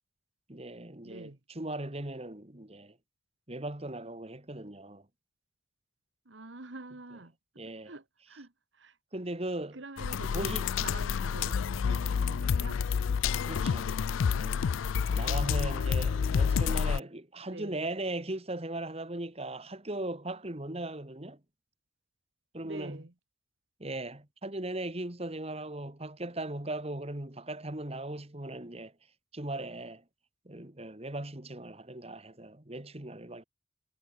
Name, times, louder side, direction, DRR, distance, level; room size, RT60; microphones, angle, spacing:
voice 1, 0.5-3.0 3.5-5.1 7.6-7.9 9.1-9.8 10.3-10.7 13.4-13.9 14.2-14.6 15.1-21.4 22.5-23.0 23.8-28.9 29.3-30.0 30.5-33.4, right 1 dB, 30° right, 1.8 m, -38 dB
voice 2, 1.0-1.4 6.2-7.3 7.8-9.0 9.7-11.6 11.8-12.8 15.1-16.0 16.3-17.0 17.5-17.8 22.6-23.1, right 2 dB, 70° right, 1.7 m, -46 dB
sound 1, 10.0-17.0, left 6 dB, 85° left, 0.4 m, -29 dB
head